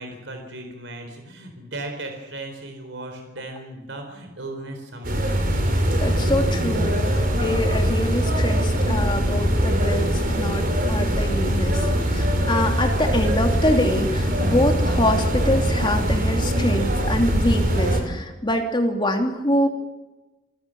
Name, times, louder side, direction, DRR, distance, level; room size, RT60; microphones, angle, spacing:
voice 1, 0.0-5.6, right 2 dB, 75° right, 5 dB, 4.2 m, -36 dB
sound 1, 5.0-18.0, equal, 50° right, 5.1 m, -22 dB
voice 2, 5.9-19.7, left 1 dB, 25° left, 3 dB, 3.0 m, -25 dB
27.5 x 15.5 x 7.8 m, 1.1 s
head